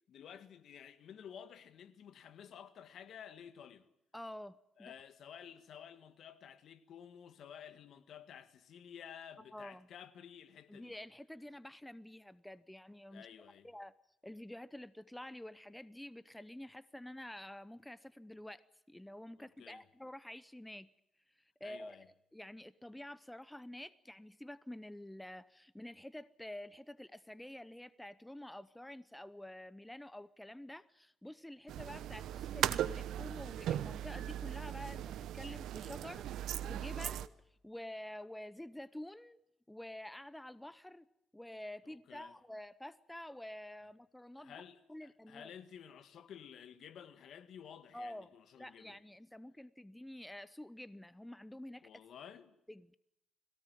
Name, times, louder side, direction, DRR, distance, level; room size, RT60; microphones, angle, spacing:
voice 1, 0.1-3.9 4.8-10.9 13.1-13.7 19.4-19.9 21.6-22.1 41.9-42.3 44.4-49.0 51.8-52.6, left 8 dB, 70° left, 1.8 m, -53 dB
voice 2, 4.1-4.9 9.5-9.9 10.7-13.3 13.6-13.9 14.2-18.6 18.9-20.9 21.4-22.0 22.3-37.3 37.6-39.4 39.7-41.1 41.3-44.6 44.9-45.5 47.9-51.9 52.7-53.0, left 1 dB, 5° left, 0.8 m, -49 dB
sound 1, 31.7-37.3, right 11 dB, 80° right, 0.9 m, -38 dB
22.0 x 17.5 x 9.2 m
cardioid pair, 90°, 0 cm